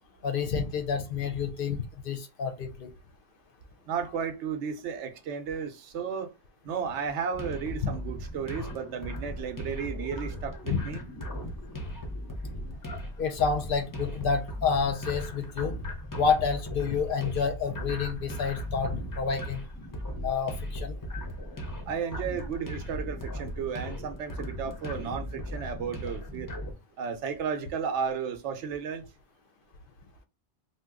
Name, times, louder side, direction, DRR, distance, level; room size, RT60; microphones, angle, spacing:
voice 1, 0.2-2.9 10.7-10.8 13.2-15.7 16.1-19.6 20.2-21.0, left 5 dB, 60° left, 0.7 m, -29 dB
voice 2, 3.9-6.3 6.6-11.0 21.9-26.5 27.0-29.0, right 6 dB, 85° right, 0.9 m, -33 dB
sound 1, 7.3-26.7, equal, 25° left, 0.5 m, -37 dB
2.7 x 2.2 x 3.5 m
omnidirectional pair, 1.1 m